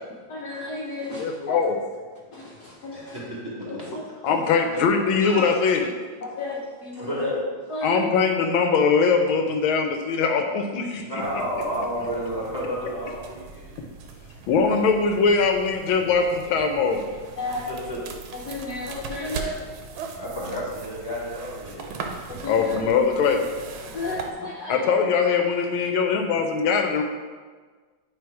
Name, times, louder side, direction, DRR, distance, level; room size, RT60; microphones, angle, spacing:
voice 1, 0.3-1.6 2.3-3.2 3.9-4.3 6.2-7.3 7.7-8.1 17.4-17.7 18.3-19.5 19.9-20.0 22.3-22.8 23.8-24.9, left 2 dB, 65° left, -3 dB, 1.1 m, -33 dB
voice 2, 1.2-1.8 4.2-5.9 7.8-11.2 14.5-17.1 22.5-23.4 24.7-27.0, left 5 dB, 80° left, 4 dB, 1.4 m, -21 dB
voice 3, 2.9-3.4 3.7-3.9 4.7-4.9 5.2-5.4 6.9-7.4 10.9-13.7 17.4-18.0 20.2-22.0 23.8-24.4, equal, 15° right, -6 dB, 1.4 m, -32 dB
sound 1, 11.2-24.3, right 4 dB, 75° right, 1.5 m, -40 dB
8.7 x 3.1 x 4.7 m, 1.5 s
omnidirectional pair, 2.3 m